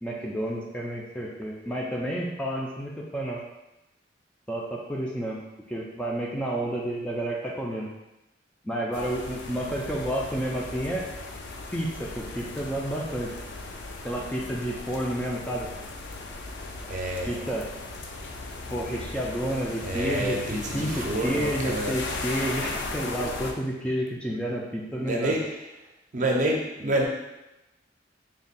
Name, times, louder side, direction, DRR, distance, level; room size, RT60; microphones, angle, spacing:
voice 1, 0.0-3.4 4.5-5.4 5.7-7.9 8.6-11.1 11.7-13.3 14.0-15.7 17.3-17.7 18.7-20.4 20.7-25.3, right 1 dB, 5° left, -3 dB, 0.4 m, -30 dB
sound 1, 8.9-23.5, left 3 dB, 70° left, 0.4 m, -37 dB
voice 2, 16.9-17.4 19.8-21.9 25.0-25.6 26.1-27.1, right 1 dB, 45° right, 0 dB, 0.6 m, -28 dB
3.4 x 2.2 x 4.0 m, 0.95 s
head